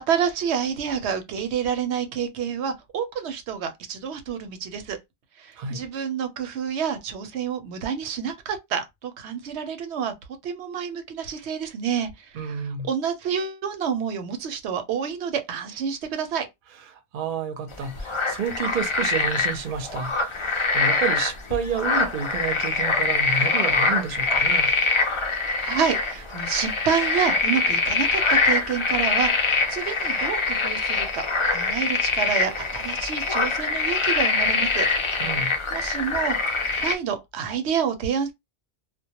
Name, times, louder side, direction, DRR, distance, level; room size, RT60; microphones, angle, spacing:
voice 1, 0.0-5.0 5.4-10.1 10.4-12.1 12.4-16.5 25.6-34.9 35.4-38.3, right 7 dB, 90° right, 0.9 m, -28 dB
voice 2, 12.3-12.9 16.9-24.7 35.2-35.5, right 6 dB, 55° right, 0.7 m, -30 dB
sound 1, 17.7-37.0, left 3 dB, 45° left, 0.4 m, -24 dB
2.2 x 2.1 x 2.8 m
omnidirectional pair, 1.1 m